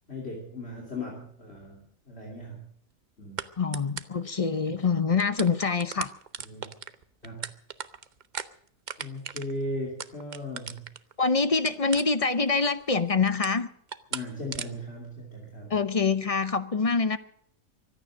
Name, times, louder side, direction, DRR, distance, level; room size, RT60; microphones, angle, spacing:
voice 1, 0.1-2.7 3.2-3.4 6.5-6.7 7.2-7.5 9.0-10.9 14.1-15.7, left 1 dB, 55° left, 3.3 m, -37 dB
sound 1, 1.5-1.7 3.4-3.5 3.7-4.2 4.8-4.9 5.1-11.1 11.6-12.5 12.8-13.6 13.9-14.2 14.5-14.7, right 7 dB, 45° right, 0.7 m, -37 dB
voice 2, 3.6-6.1 11.2-13.7 15.7-17.2, left 4 dB, 35° left, 0.7 m, -25 dB
24.0 x 9.2 x 6.4 m
omnidirectional pair, 1.3 m